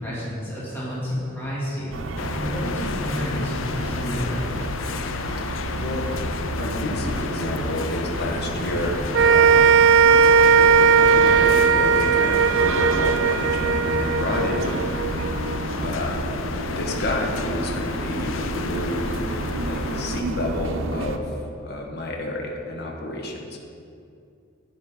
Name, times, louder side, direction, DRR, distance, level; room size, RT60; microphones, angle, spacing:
voice 1, 0.0-2.0 2.3-4.5, equal, 15° left, -9 dB, 2.8 m, -30 dB
sound 1, 1.9-21.2, right 2 dB, 80° right, 0.7 m, -30 dB
sound 2, 2.2-20.2, left 5 dB, 70° left, 0.4 m, -33 dB
voice 2, 5.7-6.1 6.6-9.7 10.5-14.8 15.8-16.4 16.6-19.4 19.6-23.6, left 1 dB, 55° left, 0 dB, 1.3 m, -30 dB
sound 3, 9.1-15.6, right 6 dB, 65° right, 0.3 m, -17 dB
12.0 x 9.7 x 3.9 m, 2.5 s
head